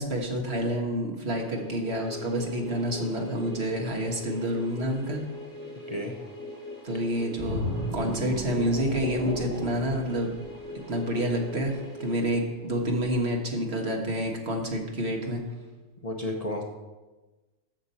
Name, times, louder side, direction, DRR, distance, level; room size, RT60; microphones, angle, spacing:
voice 1, 0.0-5.2 6.8-10.3 10.9-15.4, equal, 55° right, 1 dB, 1.7 m, -28 dB
sound 1, 1.2-13.1, left 1 dB, 60° left, 3.1 m, -42 dB
sound 2, 7.4-11.0 11.4-11.6, equal, 35° right, 2.8 m, -34 dB
voice 2, 16.0-16.6, left 1 dB, 35° left, 0 dB, 0.9 m, -31 dB
14.0 x 6.1 x 4.3 m, 1.2 s
omnidirectional pair, 1.4 m